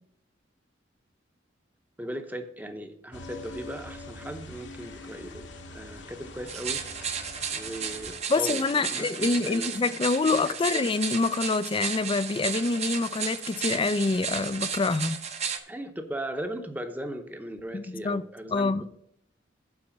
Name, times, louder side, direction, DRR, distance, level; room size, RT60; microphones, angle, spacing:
voice 1, 2.0-6.8 7.5-9.9 10.4-10.8 15.7-18.7, right 1 dB, 10° right, 0.8 m, -38 dB
sound 1, 3.1-8.2, left 2 dB, 70° left, 1.1 m, -44 dB
sound 2, 6.5-15.6, right 7 dB, 35° right, 0.9 m, -34 dB
voice 2, 8.3-15.2 17.7-18.2 18.5-18.9, left 3 dB, 30° left, 0.4 m, -26 dB
8.7 x 4.5 x 7.1 m
head